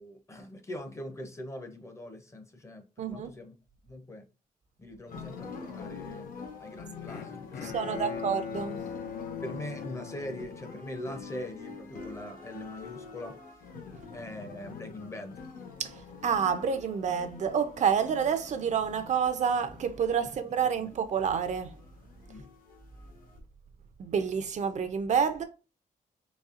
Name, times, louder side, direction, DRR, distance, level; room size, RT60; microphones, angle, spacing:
voice 1, 0.0-2.8 3.1-3.5 3.8-4.2 4.8-6.3 6.6-8.2 9.4-13.3 14.1-15.4 20.8-20.9 22.3-22.5, left 1 dB, 20° left, 0.5 m, -42 dB
voice 2, 3.0-3.3 7.6-8.8 15.8-21.8 24.0-25.4, right 7 dB, 50° right, 0.4 m, -28 dB
sound 1, 5.1-23.4, left 5 dB, 70° left, 0.9 m, -46 dB
Bowed string instrument, 7.1-11.3, left 7 dB, 90° left, 0.5 m, -40 dB
4.0 x 3.1 x 2.5 m
wide cardioid pair, 175°, 15 cm